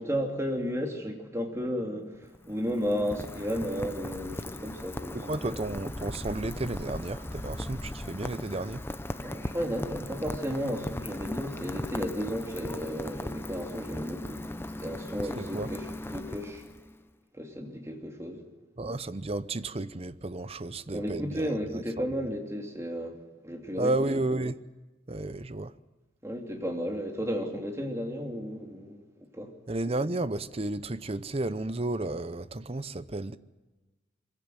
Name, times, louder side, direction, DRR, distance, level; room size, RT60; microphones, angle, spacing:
voice 1, 0.0-5.2 5.5-5.6 9.1-14.5 14.8-16.6 17.3-18.4 20.9-23.2 23.4-24.2 26.2-29.0 29.3-29.5, equal, 15° right, 2.9 m, -33 dB
Rain, 2.1-17.0, left 1 dB, 10° left, 0.7 m, -38 dB
voice 2, 5.1-8.8 15.4-15.7 18.8-22.0 23.8-24.6 25.1-25.7 29.7-33.4, right 2 dB, 30° right, 0.7 m, -32 dB
23.5 x 16.0 x 9.2 m
head